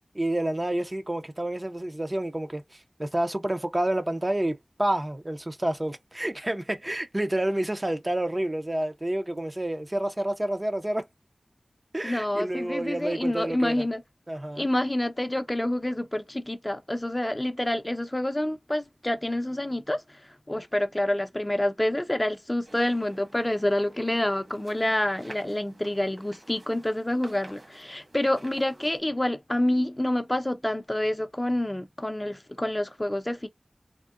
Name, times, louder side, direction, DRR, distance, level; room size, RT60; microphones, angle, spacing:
voice 1, 0.1-11.1 11.9-13.8 14.3-14.7, right 1 dB, 30° right, 0.5 m, -29 dB
voice 2, 12.0-14.0 14.6-20.0 20.5-33.5, left 1 dB, 25° left, 0.5 m, -27 dB
sound 1, 22.6-29.0, right 1 dB, 60° right, 1.4 m, -50 dB
3.6 x 2.1 x 2.3 m
wide cardioid pair, 55°, 0 cm